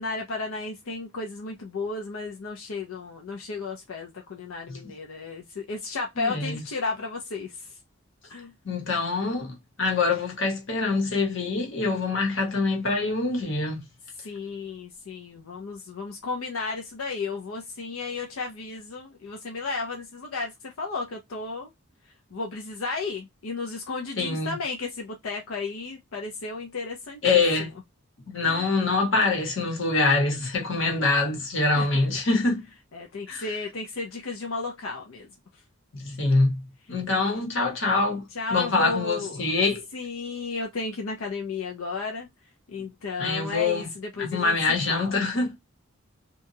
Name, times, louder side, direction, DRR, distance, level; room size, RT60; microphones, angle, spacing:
voice 1, 0.0-7.7 8.3-8.5 14.2-21.7 22.3-27.3 28.4-28.7 31.7-32.1 32.9-35.3 36.3-36.4 37.2-37.3 38.4-39.4 39.9-42.3 42.7-45.2, left 3 dB, 90° left, 0.5 m, -33 dB
voice 2, 6.2-6.6 8.6-13.8 24.2-24.6 27.2-27.7 28.3-32.7 33.3-33.5 35.9-36.6 36.9-38.2 38.5-39.8 43.2-43.9 44.2-45.5, left 3 dB, 65° left, 1.0 m, -25 dB
2.8 x 2.3 x 2.6 m
head